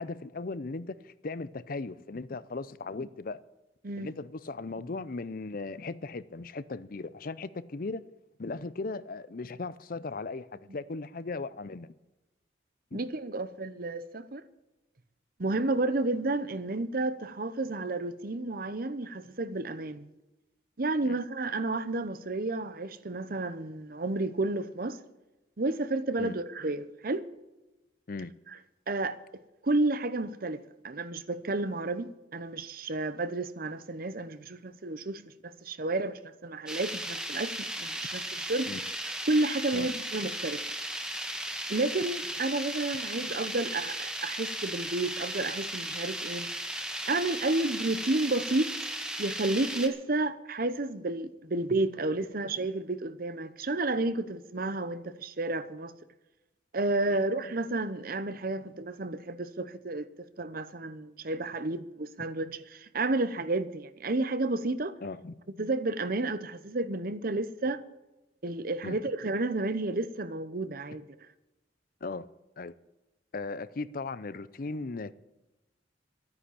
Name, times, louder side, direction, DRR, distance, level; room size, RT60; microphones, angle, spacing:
voice 1, 0.0-3.4 4.0-8.0 8.4-11.9 12.9-13.0 21.0-21.2 26.2-26.3 28.1-28.3 38.7-38.8 39.7-39.9 57.1-57.2 65.0-65.3 68.8-69.0 72.0-72.3 72.6-72.7 73.3-75.1, left 3 dB, 50° left, 0.6 m, -37 dB
voice 2, 12.9-14.4 15.4-20.1 20.8-25.0 25.6-27.3 28.9-29.2 29.6-38.7 39.3-40.6 41.7-46.5 47.1-48.7 49.2-55.9 56.7-60.1 60.4-65.0 65.6-67.8 68.4-71.0, right 2 dB, 50° right, 0.9 m, -31 dB
sound 1, 36.7-49.9, right 1 dB, 5° right, 1.4 m, -36 dB
13.0 x 9.7 x 8.5 m
head